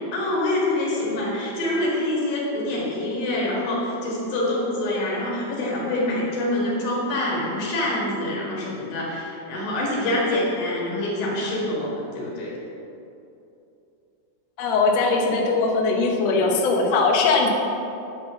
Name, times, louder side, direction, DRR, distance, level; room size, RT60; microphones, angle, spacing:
voice 1, 0.1-12.5, left 1 dB, 65° left, -4 dB, 3.4 m, -25 dB
voice 2, 14.6-17.5, left 3 dB, 85° left, 0 dB, 1.4 m, -20 dB
9.8 x 4.4 x 6.6 m, 2.8 s
omnidirectional pair, 4.4 m